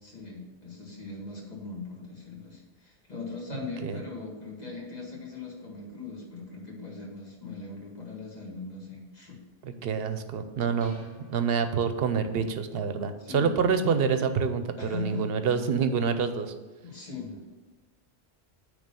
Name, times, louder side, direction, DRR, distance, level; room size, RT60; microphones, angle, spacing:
voice 1, 0.0-9.4 13.2-13.6 14.8-15.3 16.8-17.4, left 4 dB, 40° left, -3 dB, 1.9 m, -40 dB
voice 2, 3.5-4.0 9.6-10.9 11.3-16.5, right 6 dB, 70° right, 9 dB, 0.9 m, -27 dB
sound 1, 10.8-12.4, left 1 dB, 60° left, 1.6 m, -53 dB
8.9 x 3.4 x 6.7 m, 1.2 s
omnidirectional pair, 1.1 m